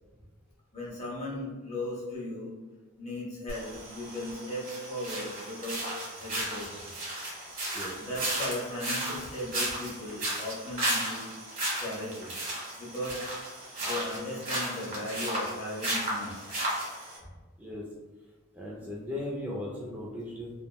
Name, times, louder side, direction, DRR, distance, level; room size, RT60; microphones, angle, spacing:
voice 1, 0.7-2.5 3.0-5.8 6.2-6.9 8.0-11.3 11.8-12.3 12.8-13.2 13.8-16.3, left 1 dB, 35° left, -6 dB, 0.8 m, -37 dB
sound 1, 3.5-17.2, right 1 dB, 45° right, 1.1 m, -34 dB
voice 2, 18.5-20.5, left 1 dB, 10° right, -5 dB, 0.3 m, -37 dB
3.3 x 2.1 x 2.2 m, 1.3 s
head